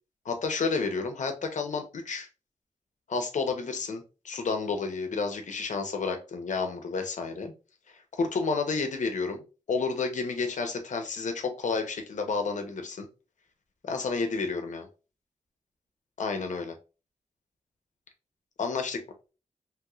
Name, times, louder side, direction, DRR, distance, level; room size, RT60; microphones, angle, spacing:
voice 1, 0.2-2.3 3.1-7.5 7.9-9.4 9.7-13.1 13.8-14.9 16.2-16.7 18.6-19.0, left 4 dB, 75° left, 5 dB, 0.7 m, -30 dB
3.0 x 3.0 x 2.3 m, 0.32 s
wide cardioid pair, 145°, 13 cm